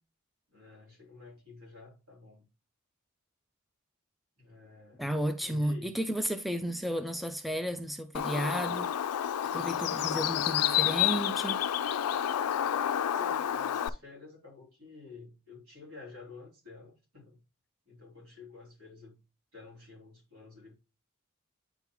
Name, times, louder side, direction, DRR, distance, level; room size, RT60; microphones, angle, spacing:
voice 1, 0.5-2.5 4.4-5.1 5.4-6.0 13.1-17.4 17.9-19.2 19.5-20.7, left 4 dB, 75° right, 3.0 m, -50 dB
voice 2, 5.0-8.9 9.5-11.7, right 1 dB, ahead, 0.3 m, -33 dB
Bird, 8.1-13.9, left 10 dB, 75° left, 0.4 m, -29 dB
9.1 x 3.9 x 2.9 m
head